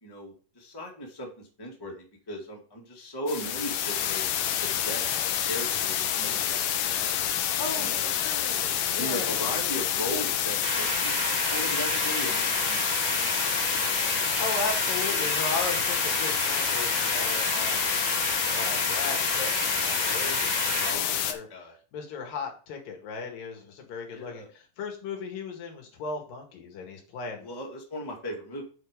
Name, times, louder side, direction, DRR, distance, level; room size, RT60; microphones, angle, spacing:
voice 1, 0.0-4.2 4.6-6.6 6.9-7.3 7.7-8.1 8.9-14.2 20.9-21.8 24.1-24.5 27.4-28.6, equal, 10° left, 0 dB, 1.6 m, -38 dB
sound 1, 3.3-21.3, left 10 dB, 70° left, 1.8 m, -28 dB
voice 2, 7.5-9.6 14.4-17.9 18.5-21.5 21.9-27.5, left 4 dB, 90° left, 2 dB, 3.6 m, -36 dB
sound 2, 10.6-20.9, right 4 dB, 85° right, 4.0 m, -32 dB
sound 3, 15.4-17.7, right 5 dB, 55° right, 1.2 m, -47 dB
8.4 x 5.0 x 5.1 m, 0.39 s
omnidirectional pair, 3.8 m